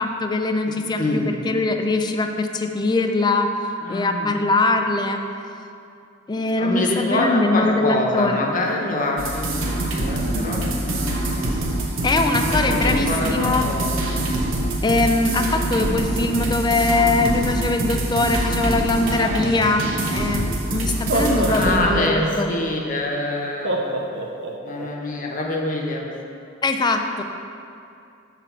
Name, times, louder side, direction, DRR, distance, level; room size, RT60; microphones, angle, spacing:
voice 1, 0.0-3.5 3.9-5.2 6.3-8.3 12.0-13.7 14.8-22.5 26.6-27.2, left 2 dB, 20° left, 5 dB, 0.4 m, -22 dB
voice 2, 0.6-1.3 3.8-4.4 6.3-9.7 10.0-11.3 11.9-14.0 21.5-23.8 24.6-26.1, left 1 dB, 40° left, -1 dB, 0.9 m, -25 dB
sound 1, 9.2-21.8, right 1 dB, 85° right, 1.0 m, -24 dB
Laughter, 20.2-20.3 20.9-22.7 23.6-24.9, right 1 dB, 60° right, 0.8 m, -26 dB
7.1 x 4.5 x 5.7 m, 2.5 s
head